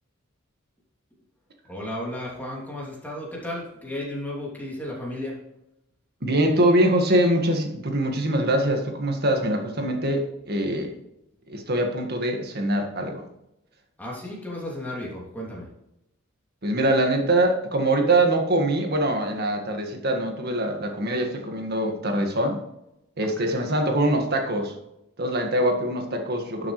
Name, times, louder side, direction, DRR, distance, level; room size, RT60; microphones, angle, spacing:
voice 1, 1.7-5.4 14.0-15.7 23.2-23.5, left 1 dB, 10° left, -4 dB, 2.9 m, -34 dB
voice 2, 6.2-10.9 11.5-13.2 16.6-22.6 23.2-24.7 25.2-26.7, right 1 dB, 50° right, 3 dB, 1.8 m, -23 dB
11.5 x 6.9 x 3.3 m, 0.85 s
head